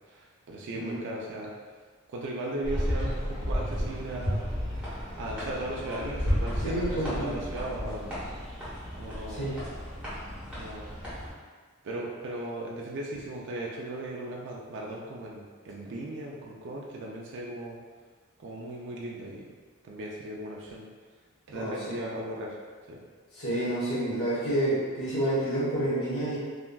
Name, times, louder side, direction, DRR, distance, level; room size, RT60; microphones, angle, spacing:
voice 1, 0.1-1.5 2.1-4.4 5.2-8.2 8.9-9.5 10.5-11.0 11.8-17.8 18.4-19.5 19.8-20.9 21.5-22.6 22.9-23.0, right 1 dB, 55° right, -3 dB, 0.4 m, -37 dB
sound 1, 2.6-11.3, equal, 5° right, 1.0 m, -33 dB
voice 2, 6.6-7.4 9.3-9.6 21.5-22.0 23.3-26.4, right 1 dB, 60° left, -13 dB, 1.3 m, -29 dB
3.6 x 2.2 x 2.2 m, 1.5 s
head